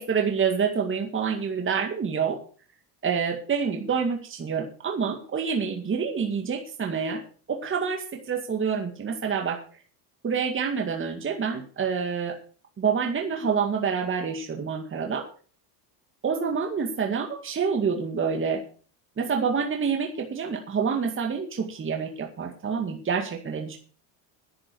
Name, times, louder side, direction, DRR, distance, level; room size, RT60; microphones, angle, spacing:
voice 1, 0.0-2.4 3.0-7.2 7.5-9.6 10.2-12.4 12.8-15.3 16.2-18.6 19.2-23.8, right 6 dB, 25° right, 3 dB, 2.2 m, -27 dB
10.5 x 10.5 x 6.3 m, 0.41 s
supercardioid pair, 105°, 46 cm